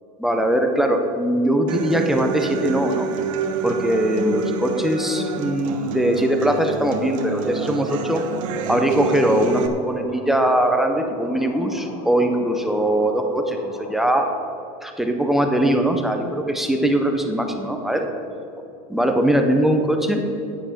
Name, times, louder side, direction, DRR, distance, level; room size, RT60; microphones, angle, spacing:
voice 1, 0.2-3.1 3.6-8.2 8.7-14.3 14.8-18.1 18.9-20.3, right 1 dB, ahead, 3 dB, 0.5 m, -21 dB
Human voice / Acoustic guitar, 1.7-9.7, right 5 dB, 65° right, 1.1 m, -28 dB
sound 1, 8.8-14.3, left 1 dB, 75° left, 2.8 m, -42 dB
10.0 x 9.0 x 5.6 m, 2.9 s
supercardioid pair, 180°, 18 cm